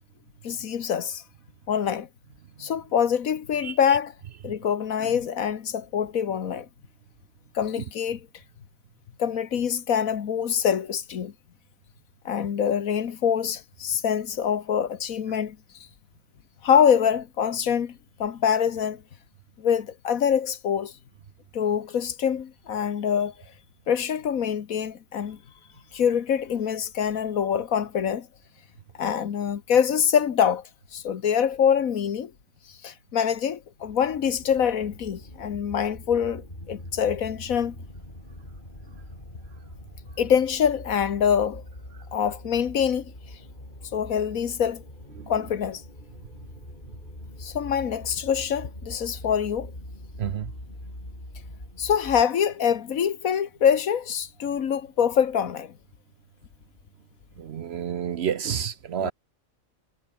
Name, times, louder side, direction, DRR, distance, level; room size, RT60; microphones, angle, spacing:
voice 1, 0.4-1.2 1.7-2.1 2.6-4.1 4.4-6.7 7.5-8.3 9.2-11.3 12.2-15.6 16.6-19.0 19.6-20.9 21.5-23.3 23.9-25.4 25.9-28.3 29.0-30.6 30.9-32.3 32.8-37.7 40.2-41.6 42.1-43.1 43.9-44.8 45.3-45.8 47.4-49.7 51.8-55.7 59.0-59.1, left 8 dB, 75° left, 1.6 m, -25 dB
sound 1, 33.8-52.2, left 1 dB, 35° left, 7.2 m, -43 dB
voice 2, 57.4-59.1, right 8 dB, 60° right, 0.8 m, -29 dB
omnidirectional pair, 1.5 m